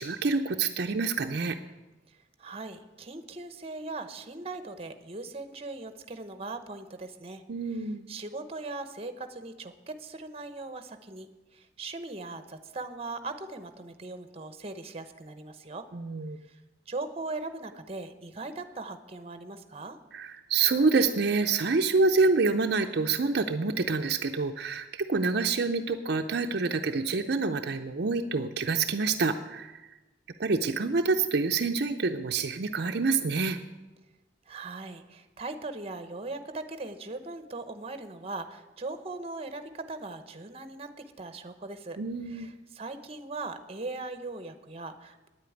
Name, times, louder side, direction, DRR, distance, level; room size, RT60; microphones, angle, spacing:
voice 1, 0.0-1.6 7.5-8.1 15.9-16.4 20.1-29.7 30.4-33.6 42.0-42.5, right 4 dB, 60° right, 5 dB, 0.6 m, -27 dB
voice 2, 2.4-7.4 7.7-11.3 11.5-15.9 16.5-16.6 16.9-20.0 34.5-42.0 42.3-45.3, right 3 dB, 35° right, 9 dB, 0.9 m, -39 dB
9.6 x 8.4 x 9.2 m, 1.1 s
head